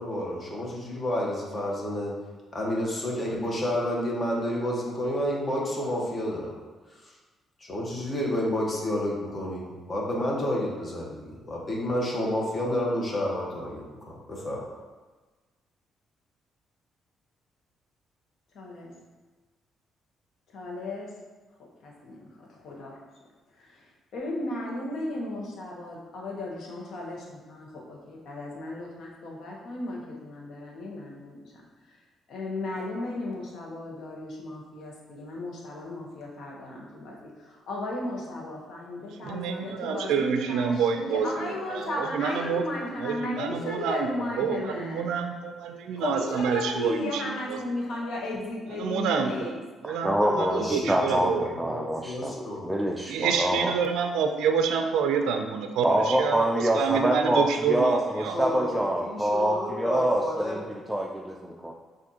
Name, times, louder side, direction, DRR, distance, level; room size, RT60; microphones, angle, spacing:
voice 1, 0.0-2.1 2.5-6.5 6.9-7.0 7.6-14.6 50.2-52.6 58.3-60.7, left 1 dB, 30° left, -3 dB, 1.1 m, -30 dB
voice 2, 18.5-18.9 20.5-21.1 21.8-23.0 23.6-23.8 24.1-31.5 31.9-32.0 32.3-45.1 46.0-49.6, left 2 dB, 70° left, -2 dB, 1.0 m, -35 dB
voice 3, 39.1-42.6 43.0-47.6 48.7-49.6 49.8-51.5 53.1-58.4, right 6 dB, 85° right, 5 dB, 0.3 m, -28 dB
voice 4, 49.8-53.7 55.8-61.7, right 1 dB, 10° right, -1 dB, 0.4 m, -26 dB
5.9 x 2.6 x 2.8 m, 1.3 s
cardioid pair, 90°, 0 cm